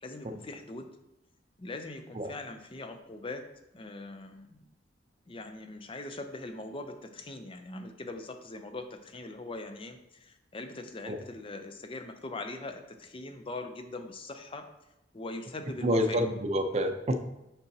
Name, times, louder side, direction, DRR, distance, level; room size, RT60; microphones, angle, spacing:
voice 1, 0.0-0.9 1.6-3.4 3.7-4.7 5.3-14.7 15.1-16.2, left 2 dB, 30° left, 7 dB, 0.5 m, -41 dB
voice 2, 15.8-17.2, equal, 35° right, 6 dB, 0.6 m, -28 dB
6.8 x 5.8 x 2.8 m, 0.91 s
head